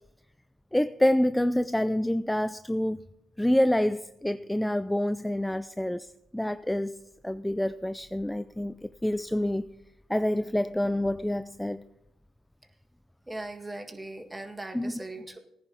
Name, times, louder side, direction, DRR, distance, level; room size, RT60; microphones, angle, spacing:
voice 1, 0.7-3.0 3.4-9.7 10.1-11.8 14.7-14.9, left 1 dB, 5° left, 0.4 m, -27 dB
voice 2, 13.3-15.4, right 2 dB, 15° right, 1.8 m, -39 dB
19.0 x 10.5 x 2.9 m
supercardioid pair, 65°, 0 cm